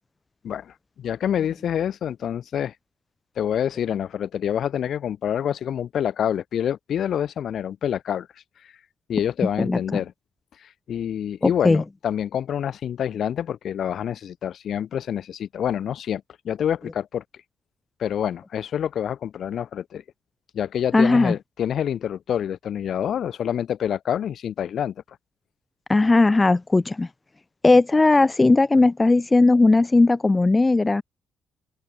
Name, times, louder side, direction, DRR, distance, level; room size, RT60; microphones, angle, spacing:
voice 1, 0.4-2.7 3.4-8.3 9.1-10.1 10.6-17.2 18.0-20.0 20.5-25.2, left 9 dB, 65° left, 2.5 m, -27 dB
voice 2, 11.4-11.8 20.9-21.3 25.9-27.1 27.6-31.0, left 3 dB, 20° left, 0.8 m, -17 dB
open air
cardioid pair, 90°, 0 cm